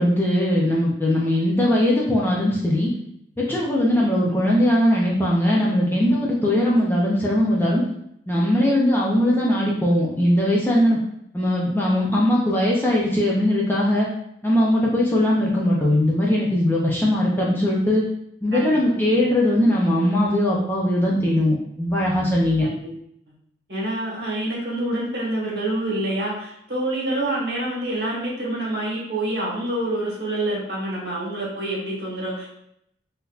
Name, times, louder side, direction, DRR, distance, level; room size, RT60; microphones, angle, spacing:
voice 1, 0.0-2.9 3.4-7.8 8.3-11.0 11.3-14.1 14.4-18.0 18.4-22.7, left 1 dB, 10° left, -4 dB, 0.4 m, -20 dB
voice 2, 18.5-19.2 22.6-22.9 23.7-32.5, right 1 dB, 60° right, -5 dB, 1.2 m, -27 dB
3.8 x 2.7 x 2.4 m, 0.74 s
head